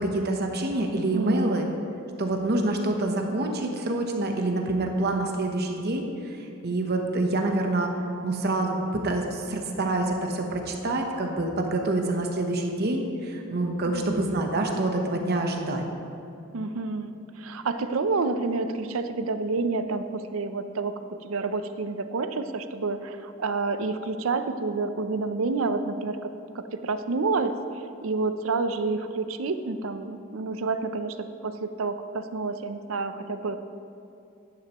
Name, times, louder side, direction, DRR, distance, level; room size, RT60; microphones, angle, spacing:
voice 1, 0.0-1.6 2.2-7.9 8.2-15.8, right 2 dB, 50° right, 3 dB, 0.9 m, -27 dB
voice 2, 1.1-1.7 13.8-14.2 16.5-20.9 21.2-27.5 28.0-33.6, right 3 dB, 75° right, 10 dB, 0.5 m, -29 dB
11.0 x 11.0 x 3.0 m, 2.6 s
head